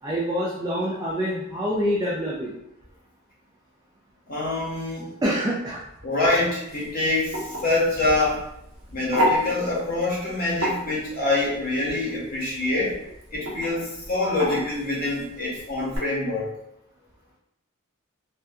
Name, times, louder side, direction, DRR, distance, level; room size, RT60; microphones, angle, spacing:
voice 1, 0.0-2.5 5.2-5.8, equal, 15° right, -6 dB, 0.3 m, -26 dB
voice 2, 4.3-5.1 6.0-8.4 8.9-13.0 13.3-16.5, left 2 dB, 40° left, -5 dB, 0.8 m, -25 dB
sound 1, 6.7-16.0, equal, 65° right, 0.9 m, -31 dB
2.6 x 2.3 x 2.3 m, 0.80 s
head